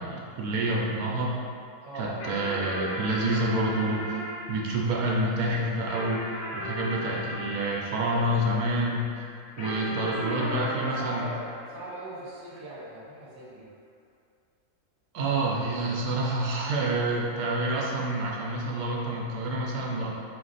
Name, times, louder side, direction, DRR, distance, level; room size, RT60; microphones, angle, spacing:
voice 1, 0.0-1.3 1.9-4.2 4.5-6.2 6.5-9.2 9.6-11.3 15.1-20.1, right 1 dB, 85° right, -3 dB, 1.1 m, -28 dB
voice 2, 1.8-2.1 9.7-13.6, right 1 dB, 40° right, -6 dB, 1.0 m, -39 dB
sound 1, 2.2-8.9 9.6-12.4, left 1 dB, 65° left, 1.3 m, -37 dB
4.2 x 2.6 x 3.9 m, 2.3 s
omnidirectional pair, 1.6 m